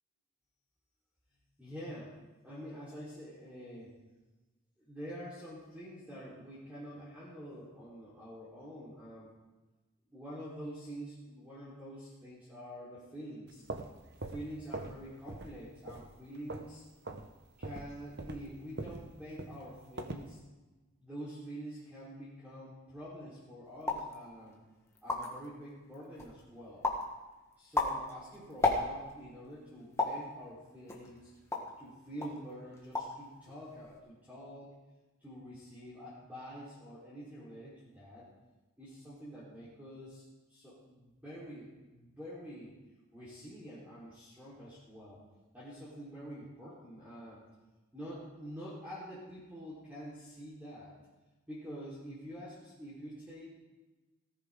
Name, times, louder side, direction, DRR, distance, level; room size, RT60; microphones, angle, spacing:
voice 1, 1.6-2.2 2.4-3.9 4.8-9.3 10.1-13.6 14.2-16.8 17.6-20.4 21.0-24.6 25.0-26.9 27.6-31.3 31.8-34.7 35.2-38.3 38.8-40.2 40.5-42.7 43.1-45.2 45.5-47.4 47.9-50.9 51.5-53.5, equal, 5° right, -11 dB, 4.1 m, -47 dB
sound 1, 13.5-15.0 15.3-15.6 15.9-16.8 17.0-17.3 17.6-20.3, right 2 dB, 50° right, 1.0 m, -42 dB
sound 2, 23.8-24.1 24.7-24.8 24.9-25.5 25.9-26.4 26.8-27.1 27.5-29.2 30.0-30.3 30.9-31.8 32.2-32.4 32.7-33.2 33.5-34.0, left 3 dB, 15° left, 1.7 m, -33 dB
18.5 x 14.0 x 3.8 m, 1.1 s
head